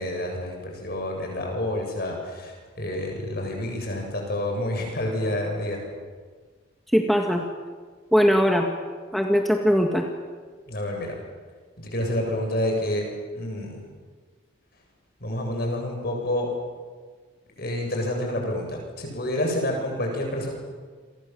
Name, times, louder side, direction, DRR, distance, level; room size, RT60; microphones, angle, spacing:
voice 1, 0.0-5.8 10.7-11.2 11.8-13.0 13.3-13.8 15.2-16.5 17.6-20.5, left 1 dB, 50° left, 2 dB, 7.9 m, -28 dB
voice 2, 6.9-7.4 8.1-8.7 9.1-10.0, equal, ahead, 2 dB, 1.8 m, -20 dB
29.0 x 24.0 x 7.8 m, 1.5 s
head